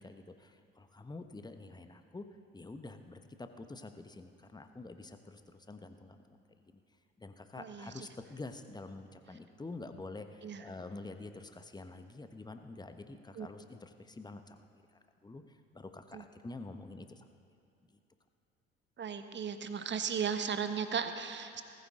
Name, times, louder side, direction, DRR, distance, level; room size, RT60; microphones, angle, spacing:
voice 1, 0.0-2.3 2.5-6.8 7.2-14.8 15.2-17.3, left 2 dB, 15° left, 8 dB, 1.1 m, -47 dB
voice 2, 7.6-7.9 10.4-10.6 13.4-13.5 16.1-16.2 19.0-21.6, right 7 dB, 35° right, 8 dB, 1.2 m, -36 dB
19.5 x 14.5 x 3.8 m, 2.5 s
figure-of-eight pair, 55°, 31 cm